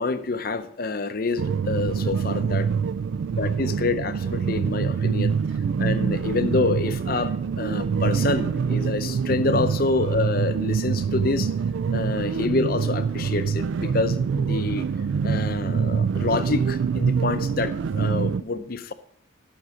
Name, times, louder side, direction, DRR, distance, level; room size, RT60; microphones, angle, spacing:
voice 1, 0.0-2.7 3.4-5.4 5.8-11.5 11.9-14.9 15.2-18.9, left 3 dB, 45° left, 11 dB, 0.6 m, -27 dB
sound 1, 1.4-18.4, right 6 dB, 65° right, 0.3 m, -25 dB
12.5 x 6.2 x 4.9 m, 0.66 s
head